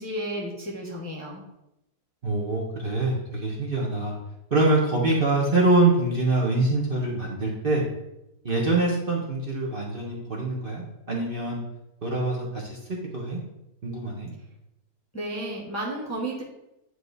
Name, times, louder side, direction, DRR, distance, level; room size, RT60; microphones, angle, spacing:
voice 1, 0.0-1.4 15.1-16.4, right 1 dB, 10° left, -3 dB, 0.9 m, -32 dB
voice 2, 2.2-4.1 4.5-7.8 8.4-11.6 12.0-12.8 13.1-13.4 13.8-14.3, right 2 dB, 40° right, -3 dB, 1.1 m, -24 dB
9.3 x 3.3 x 4.0 m, 0.88 s
omnidirectional pair, 1.7 m